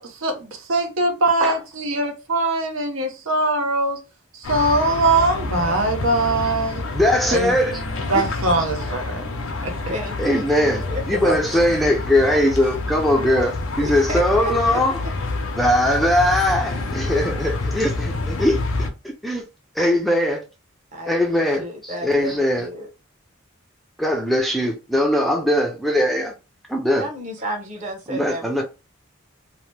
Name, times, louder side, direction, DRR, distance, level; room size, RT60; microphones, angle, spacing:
voice 1, 0.0-4.0 4.3-6.8 7.3-7.5 8.1-9.3 9.6-9.7 11.2-11.6, right 2 dB, 75° right, 0.7 m, -22 dB
sound 1, 4.4-18.9, left 2 dB, 90° left, 0.6 m, -28 dB
voice 2, 6.9-7.8 10.2-14.9 15.6-18.9 19.2-19.4 19.8-20.4 21.1-22.7 24.0-26.3 26.7-27.1 28.1-28.6, left 1 dB, ahead, 0.4 m, -20 dB
voice 3, 9.9-11.3 11.6-11.7 12.3-12.8 13.3-13.4 13.8-14.8 20.9-22.9 26.9-28.6, equal, 35° right, 0.9 m, -32 dB
2.9 x 2.1 x 3.1 m
head